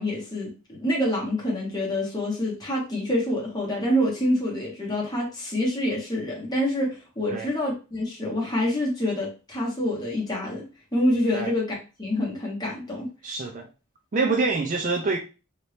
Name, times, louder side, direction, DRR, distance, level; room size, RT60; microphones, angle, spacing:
voice 1, 0.0-10.7 10.9-13.1, left 1 dB, 20° left, -4 dB, 1.1 m, -26 dB
voice 2, 13.2-13.7 14.1-15.2, right 3 dB, 35° right, 3 dB, 0.4 m, -25 dB
2.8 x 2.6 x 3.2 m, 0.32 s
head